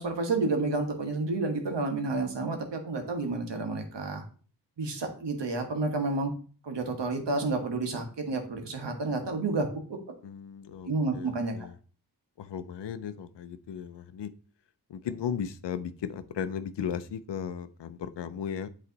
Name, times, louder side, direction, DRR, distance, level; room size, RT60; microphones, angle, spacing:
voice 1, 0.0-4.2 4.8-6.3 6.6-10.0 10.8-11.5, right 3 dB, 80° right, 5 dB, 1.3 m, -30 dB
voice 2, 10.2-11.8 12.4-14.3 14.9-18.7, left 8 dB, 85° left, 13 dB, 0.6 m, -36 dB
8.1 x 3.2 x 3.9 m, 0.41 s
cardioid pair, 45°, 42 cm